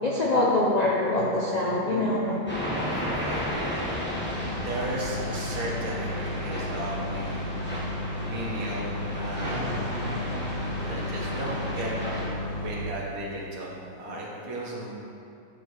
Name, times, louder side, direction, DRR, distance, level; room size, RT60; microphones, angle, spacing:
voice 1, 0.0-2.4, left 2 dB, 50° left, -5 dB, 0.5 m, -24 dB
sound 1, 2.5-12.3, equal, 10° left, 1.0 m, -33 dB
voice 2, 3.0-3.9 4.5-7.4 8.2-10.0 10.8-11.9 12.6-14.9, right 1 dB, 75° right, -3 dB, 1.6 m, -35 dB
sound 2, 4.1-12.8, left 1 dB, 30° left, 1.1 m, -33 dB
9.8 x 4.7 x 3.1 m, 2.6 s
omnidirectional pair, 1.5 m